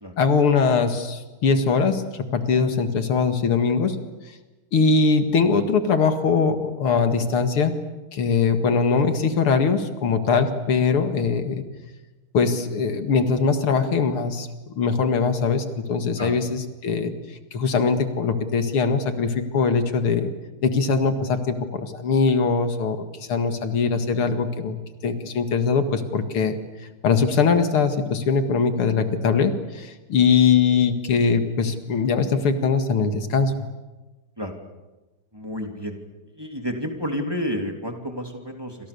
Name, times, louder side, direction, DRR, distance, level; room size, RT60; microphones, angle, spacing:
voice 1, 0.2-4.0 4.7-7.8 8.1-11.6 12.3-17.1 17.5-20.3 20.6-26.6 27.0-33.5, left 5 dB, 80° left, 7 dB, 2.8 m, -21 dB
voice 2, 35.3-36.0 36.4-38.8, equal, 10° right, 3 dB, 2.9 m, -30 dB
28.5 x 27.0 x 7.0 m, 1.2 s
omnidirectional pair, 2.4 m